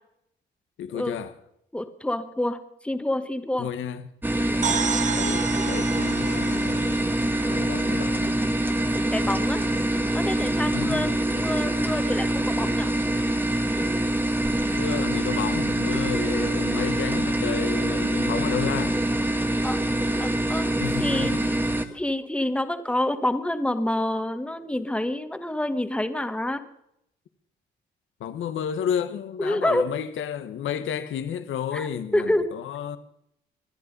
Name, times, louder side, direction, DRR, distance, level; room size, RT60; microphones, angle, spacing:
voice 1, 0.8-1.3 3.6-4.1 5.1-7.2 7.5-8.4 10.7-11.2 14.7-19.0 20.8-21.4 28.2-33.0, left 8 dB, 80° left, 1.4 m, -31 dB
voice 2, 1.7-3.7 4.4-4.6 9.1-9.6 10.1-12.9 19.6-19.8 20.2-20.7 21.0-21.3 21.9-26.6 29.4-29.9 31.7-31.9 32.1-32.5, left 1 dB, 5° left, 1.5 m, -27 dB
sound 1, 4.2-21.8, right 1 dB, 10° right, 1.5 m, -25 dB
sound 2, 4.6-8.3, right 7 dB, 40° right, 1.0 m, -31 dB
24.5 x 10.0 x 5.4 m
cardioid pair, 90°, 20 cm